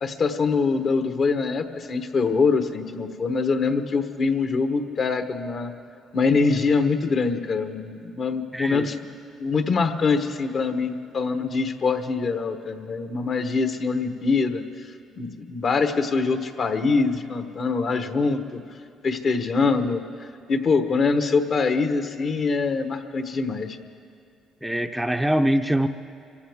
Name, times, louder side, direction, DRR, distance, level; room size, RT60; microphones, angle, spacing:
voice 1, 0.0-5.7 6.1-9.0 9.4-14.6 15.2-18.6 19.0-23.8, left 4 dB, 50° left, 8 dB, 1.1 m, -24 dB
voice 2, 8.5-8.9 24.6-25.9, right 1 dB, 5° right, 6 dB, 0.6 m, -23 dB
25.5 x 15.5 x 3.6 m, 2.4 s
cardioid pair, 85°, 0 cm